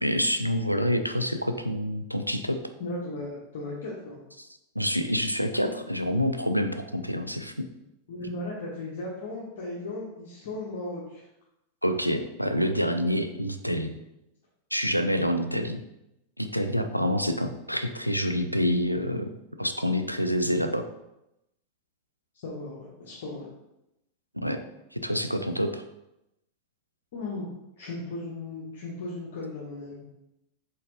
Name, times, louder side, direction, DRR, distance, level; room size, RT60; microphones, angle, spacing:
voice 1, 0.0-2.6 4.4-4.5 4.8-7.7 11.8-13.9 14.7-15.8 16.4-19.3 19.6-20.9 24.3-24.6 24.9-25.8, equal, 90° left, 8 dB, 0.3 m, -27 dB
voice 2, 2.8-4.2 8.1-11.3 22.4-23.5 27.1-27.5 27.8-30.0, left 2 dB, 55° left, -5 dB, 0.9 m, -36 dB
4.3 x 3.9 x 2.7 m, 0.87 s
figure-of-eight pair, 90°, 0 cm